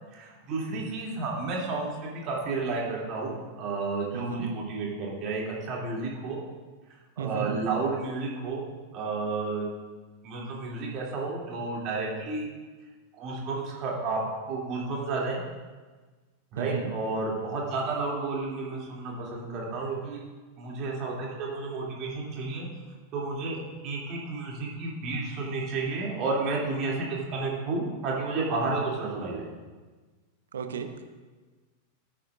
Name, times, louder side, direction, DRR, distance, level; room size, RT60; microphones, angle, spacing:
voice 1, 0.1-6.4 7.2-8.6 8.9-9.7 10.2-12.4 13.2-14.2 14.5-15.4 16.5-20.2 20.6-22.7 23.1-23.6 23.8-29.5, right 3 dB, 35° right, -3 dB, 2.8 m, -31 dB
voice 2, 4.1-4.5 7.2-7.6 16.6-16.9 28.8-28.9 30.5-31.1, right 6 dB, 65° right, 8 dB, 0.9 m, -34 dB
15.0 x 8.9 x 2.6 m, 1.3 s
figure-of-eight pair, 90°, 0 cm